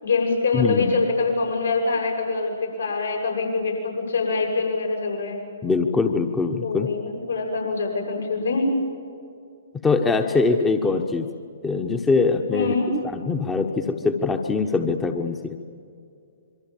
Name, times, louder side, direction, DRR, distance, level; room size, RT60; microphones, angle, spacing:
voice 1, 0.0-5.4 6.6-8.7 12.5-12.9, left 3 dB, 75° left, 0 dB, 8.0 m, -24 dB
voice 2, 0.5-0.9 5.6-6.9 9.8-11.3 11.6-12.7 13.0-15.6, left 4 dB, 10° left, 5 dB, 1.2 m, -22 dB
26.5 x 23.5 x 7.4 m, 2.4 s
figure-of-eight pair, 120°, 0 cm